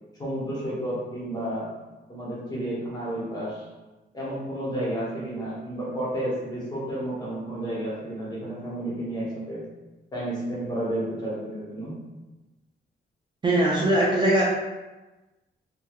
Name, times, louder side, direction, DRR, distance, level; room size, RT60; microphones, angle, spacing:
voice 1, 0.2-1.7 2.1-3.6 4.1-9.6 10.1-11.9, right 1 dB, 20° left, -7 dB, 0.9 m, -31 dB
voice 2, 13.4-14.4, right 1 dB, 25° right, -5 dB, 0.3 m, -21 dB
3.2 x 2.2 x 2.3 m, 1.1 s
wide cardioid pair, 160°, 19 cm